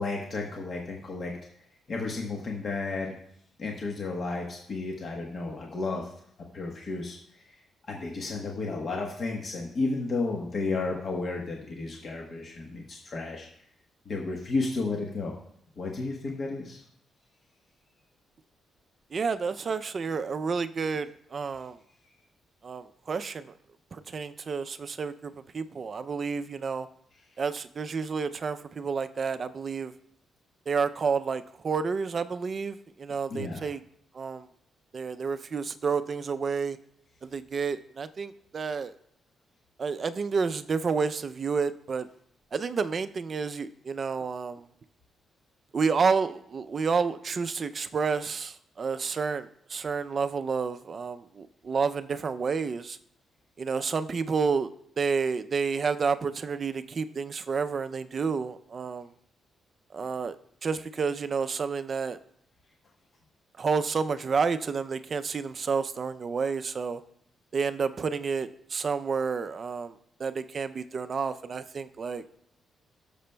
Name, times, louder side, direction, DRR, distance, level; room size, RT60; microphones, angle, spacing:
voice 1, 0.0-1.3 1.9-3.2 3.6-6.1 6.5-7.2 7.5-7.6 7.9-13.5 14.0-15.4 15.8-16.8 33.3-33.6, left 3 dB, 40° left, 0 dB, 1.0 m, -32 dB
voice 2, 19.1-21.8 22.6-23.5 23.9-26.9 27.4-29.9 30.7-33.8 34.1-34.5 34.9-36.8 37.2-38.9 39.8-42.1 42.5-44.6 45.7-53.0 53.6-54.7 55.0-59.1 59.9-60.4 60.6-62.2 63.6-67.0 67.5-72.2, right 5 dB, 35° right, 11 dB, 0.4 m, -30 dB
16.5 x 6.8 x 2.2 m, 0.68 s
cardioid pair, 160°, 0 cm